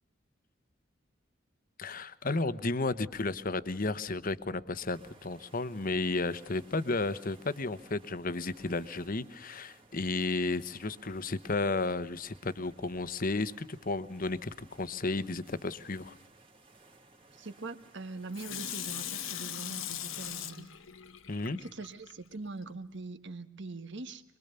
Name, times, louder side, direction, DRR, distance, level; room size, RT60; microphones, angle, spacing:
voice 1, 1.8-16.1 21.3-21.6, left 3 dB, 45° left, 13 dB, 1.0 m, -33 dB
sound 1, 4.7-20.6, right 2 dB, 25° right, 2.4 m, -59 dB
voice 2, 17.3-20.7 21.5-24.2, right 3 dB, 60° right, 10 dB, 1.5 m, -42 dB
Water tap faucet / Sink (filling or washing), 18.3-22.1 22.6-22.7, left 11 dB, 75° left, 1.2 m, -40 dB
24.5 x 23.5 x 6.9 m, 0.80 s
head